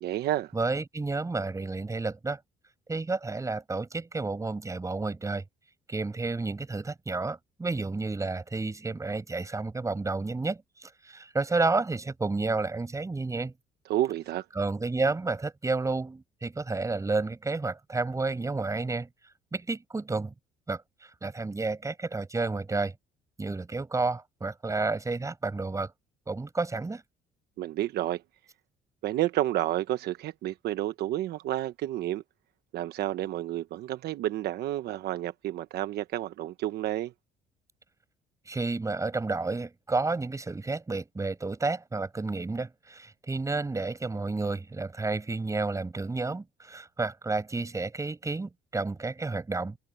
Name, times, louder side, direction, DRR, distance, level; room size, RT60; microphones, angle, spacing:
voice 1, 0.0-0.5 13.9-14.4 27.6-28.2 29.0-32.2 32.7-37.1, right 14 dB, 75° right, 1.1 m, -30 dB
voice 2, 0.5-2.4 2.9-5.4 5.9-13.5 14.6-19.1 19.5-20.3 20.7-20.8 21.2-22.9 23.4-25.9 26.3-27.0 38.5-49.8, right 3 dB, 20° right, 7.5 m, -31 dB
cardioid pair, 110°, 17 cm